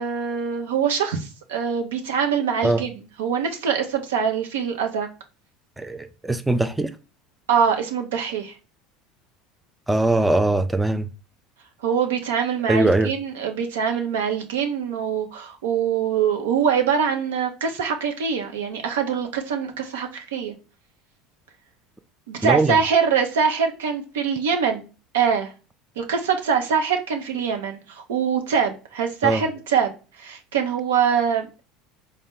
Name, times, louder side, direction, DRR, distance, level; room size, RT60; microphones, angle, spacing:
voice 1, 0.0-2.9 3.2-5.1 7.5-8.5 11.8-20.5 22.3-24.9 25.1-25.5 26.0-29.9 30.2-31.6, right 7 dB, 90° right, 0.6 m, -23 dB
voice 2, 5.8-6.9 9.9-11.1 12.7-13.1 22.4-22.8 29.2-29.4, right 2 dB, 10° right, 0.3 m, -21 dB
4.0 x 2.1 x 3.6 m
supercardioid pair, 95°, 0 cm